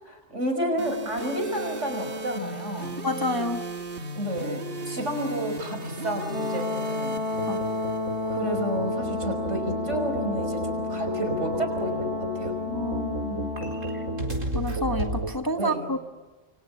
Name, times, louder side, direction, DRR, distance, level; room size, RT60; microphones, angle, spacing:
voice 1, 0.3-3.0 4.1-7.2 8.2-12.6 15.6-15.9, right 1 dB, 65° right, 5 dB, 5.8 m, -30 dB
sound 1, 0.8-8.8, right 1 dB, 50° right, 1.8 m, -36 dB
voice 2, 3.0-3.6 7.5-7.6 12.7-13.5 13.9-14.0 14.5-16.0, left 1 dB, 15° left, 5 dB, 1.4 m, -29 dB
Brass instrument, 6.3-14.2, left 3 dB, 55° left, 7.5 m, -32 dB
sound 2, 7.3-15.3, right 1 dB, 85° right, 4.7 m, -32 dB
29.0 x 24.5 x 7.1 m, 1.3 s
omnidirectional pair, 1.3 m